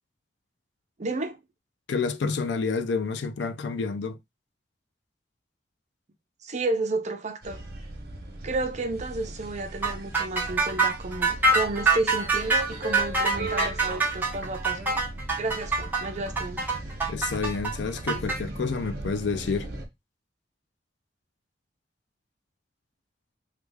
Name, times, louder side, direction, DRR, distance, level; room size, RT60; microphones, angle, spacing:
voice 1, 1.0-1.4 6.4-7.6 8.4-14.9 15.4-16.7, right 2 dB, 40° right, 0.6 m, -31 dB
voice 2, 1.9-4.2 17.1-19.7, left 4 dB, 70° left, 0.4 m, -29 dB
sound 1, 7.4-19.9, right 1 dB, 60° right, 1.0 m, -38 dB
sound 2, 9.8-18.4, right 3 dB, 10° right, 0.8 m, -25 dB
3.3 x 2.3 x 3.2 m
head